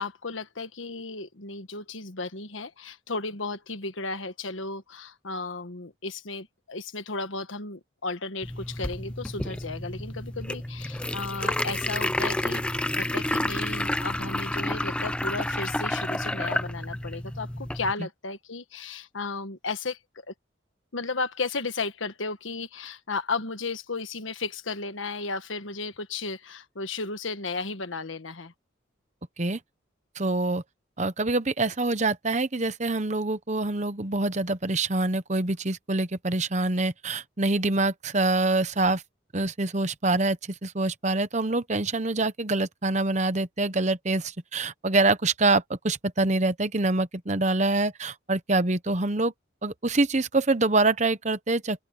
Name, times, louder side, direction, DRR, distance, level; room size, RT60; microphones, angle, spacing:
voice 1, 0.0-17.5 17.7-20.0 20.3-20.4 20.9-28.5, left 3 dB, 75° left, 1.4 m, -34 dB
sound 1, 8.4-17.9, left 1 dB, 5° left, 0.4 m, -30 dB
voice 2, 30.2-30.6 31.0-39.0 39.3-49.3 49.6-51.8, right 2 dB, 35° right, 1.0 m, -25 dB
head